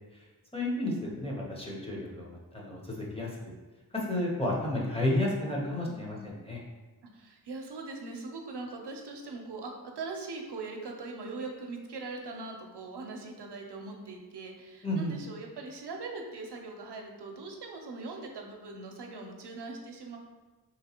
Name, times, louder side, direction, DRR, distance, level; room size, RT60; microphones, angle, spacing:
voice 1, 0.5-3.3 3.9-6.6 14.8-15.1, left 1 dB, 15° left, -4 dB, 0.7 m, -32 dB
voice 2, 5.9-6.3 7.1-20.2, right 3 dB, 85° right, 1 dB, 0.6 m, -41 dB
3.3 x 2.9 x 2.8 m, 1.2 s
wide cardioid pair, 65°, 40 cm